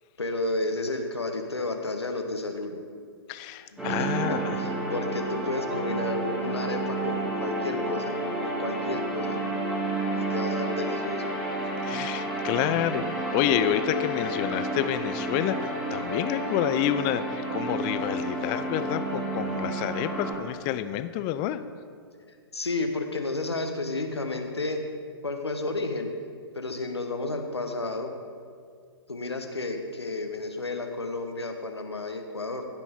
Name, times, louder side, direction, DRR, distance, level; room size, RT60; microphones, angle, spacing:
voice 1, 0.2-2.8 3.8-8.2 8.4-9.4 10.1-11.2 22.5-24.8 25.2-26.1 26.5-28.1 29.1-32.7, left 2 dB, 85° left, 5 dB, 1.1 m, -32 dB
voice 2, 3.3-4.6 11.9-21.6, left 11 dB, 25° left, 12 dB, 0.4 m, -28 dB
sound 1, 3.8-20.3, right 2 dB, 5° right, 2.5 m, -30 dB
15.0 x 6.0 x 3.7 m, 2.1 s
figure-of-eight pair, 115°, 14 cm